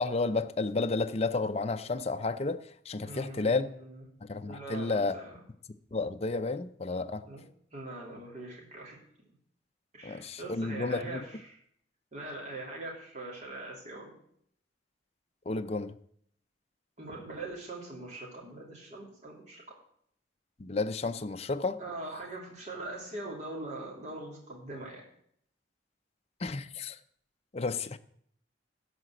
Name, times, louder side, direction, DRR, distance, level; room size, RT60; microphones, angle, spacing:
voice 1, 0.0-3.7 4.2-5.2 5.9-7.3 10.0-11.2 15.5-16.0 20.6-21.8 26.4-27.0 27.5-28.0, left 3 dB, 35° left, 0.5 m, -31 dB
voice 2, 3.0-4.0 4.5-5.4 7.2-7.4 7.7-9.0 9.9-11.6 12.1-14.1 17.0-19.6 21.8-25.0, right 2 dB, 40° right, 3.1 m, -42 dB
12.5 x 5.0 x 7.8 m
head